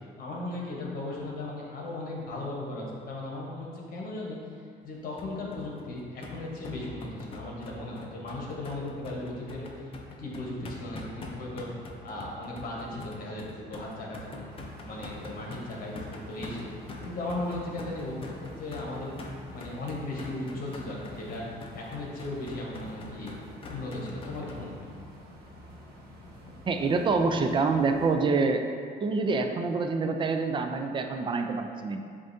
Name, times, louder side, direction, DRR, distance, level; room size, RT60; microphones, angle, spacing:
voice 1, 0.2-4.4 4.8-9.9 10.2-14.5 14.8-19.1 19.5-21.5 21.7-23.4 23.7-24.9, left 2 dB, 55° left, -3 dB, 1.1 m, -37 dB
sound 1, 5.2-24.6, left 3 dB, 35° left, 0.6 m, -44 dB
sound 2, 14.5-28.1, equal, 70° right, 1.1 m, -48 dB
voice 2, 26.7-28.6 29.0-32.0, right 4 dB, 30° right, 5 dB, 0.4 m, -26 dB
7.5 x 2.5 x 2.7 m, 2.1 s
cardioid pair, 110°, 17 cm